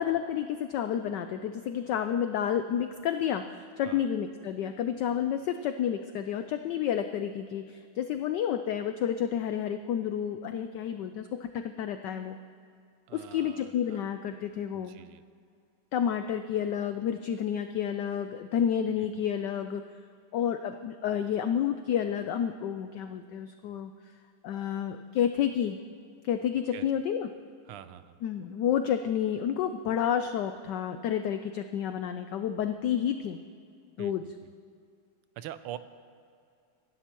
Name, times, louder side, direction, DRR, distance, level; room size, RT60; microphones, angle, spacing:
voice 1, 0.0-12.4 13.1-14.9 15.9-19.8 20.3-23.9 24.4-25.8 26.2-27.3 28.2-33.4 34.0-34.2, left 9 dB, 80° left, 8 dB, 0.9 m, -30 dB
voice 2, 13.1-14.1 14.7-15.2 19.0-19.1 26.7-26.8 27.7-28.2 34.0-34.1 34.4-34.5 35.4-35.8, right 12 dB, 90° right, 12 dB, 1.5 m, -44 dB
25.5 x 11.5 x 3.0 m, 2.4 s
omnidirectional pair, 2.4 m